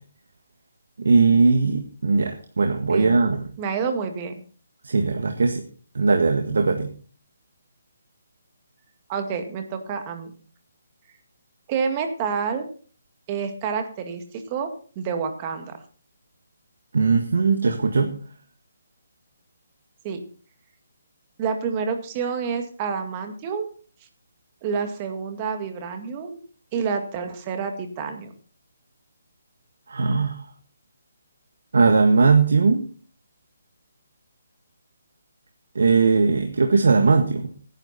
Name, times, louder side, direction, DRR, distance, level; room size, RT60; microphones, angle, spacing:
voice 1, 1.0-3.5 4.8-5.6 5.9-6.9 16.9-18.1 29.9-30.4 31.7-32.8 35.7-37.5, right 4 dB, 80° right, 5 dB, 1.8 m, -19 dB
voice 2, 2.9-3.2 3.6-4.3 9.1-10.3 11.7-12.7 13.3-15.8 20.0-20.2 21.4-23.7 24.6-26.4 26.7-28.3, right 6 dB, 25° right, 6 dB, 2.1 m, -28 dB
17.0 x 10.5 x 4.3 m, 0.40 s
hypercardioid pair, 165°, 0 cm